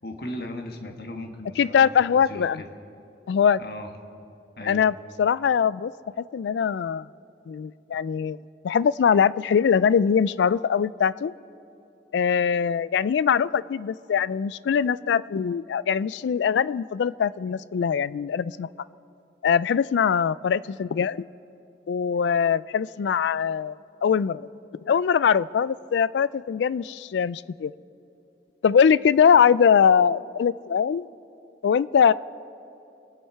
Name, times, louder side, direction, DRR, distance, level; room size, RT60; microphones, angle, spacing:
voice 1, 0.0-2.7 3.6-3.9 4.6-4.9, left 1 dB, 60° left, 4 dB, 1.5 m, -37 dB
voice 2, 1.6-2.6 3.3-3.6 4.7-5.9 6.2-7.1 7.5-8.4 8.6-11.3 12.1-18.7 19.4-21.2 21.9-23.8 24.0-24.5 24.9-27.7 28.6-31.1 31.6-32.1, left 7 dB, 80° left, 20 dB, 0.3 m, -22 dB
26.0 x 9.6 x 4.7 m, 2.9 s
head